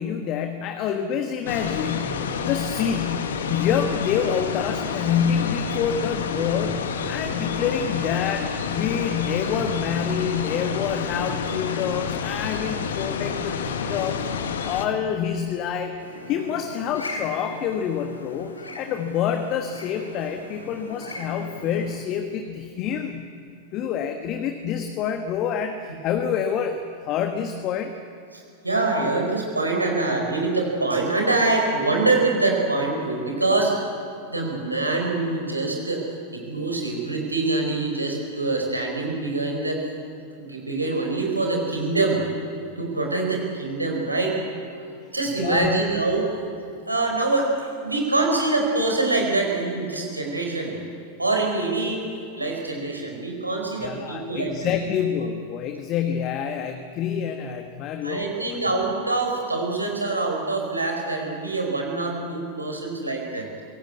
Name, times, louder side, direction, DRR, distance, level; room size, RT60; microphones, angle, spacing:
voice 1, 0.0-16.0 16.3-23.3 23.7-27.9 45.3-45.8 53.8-58.6, left 8 dB, 35° left, 6 dB, 1.4 m, -27 dB
sound 1, 1.5-14.9, left 6 dB, 65° left, 1.7 m, -29 dB
sound 2, 16.0-21.9, left 1 dB, 80° left, 3.3 m, -39 dB
voice 2, 28.3-33.7 34.3-36.1 36.3-39.9 40.4-42.2 42.8-44.8 45.1-46.3 46.9-50.8 51.2-52.0 52.4-54.7 58.0-63.5, right 2 dB, 85° right, 1 dB, 4.5 m, -25 dB
24.5 x 17.5 x 8.5 m, 2.6 s
figure-of-eight pair, 90°, 0 cm